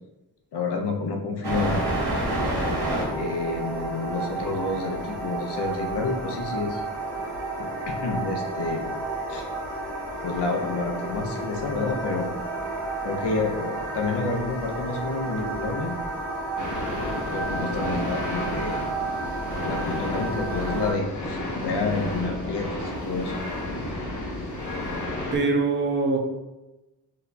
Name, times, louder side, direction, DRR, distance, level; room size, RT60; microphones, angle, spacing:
voice 1, 0.5-1.9 3.1-6.8 7.6-8.9 9.3-9.5 10.2-12.3 13.0-16.0 17.3-18.8 19.6-23.4, left 3 dB, 85° left, 2 dB, 0.6 m, -29 dB
sound 1, 1.4-20.9, right 2 dB, 70° right, 1.1 m, -31 dB
sound 2, 16.6-25.4, left 1 dB, 50° left, 0.7 m, -32 dB
voice 2, 25.3-26.2, right 3 dB, 30° right, 2 dB, 0.4 m, -23 dB
2.8 x 2.2 x 3.9 m, 1.0 s
wide cardioid pair, 175°, 40 cm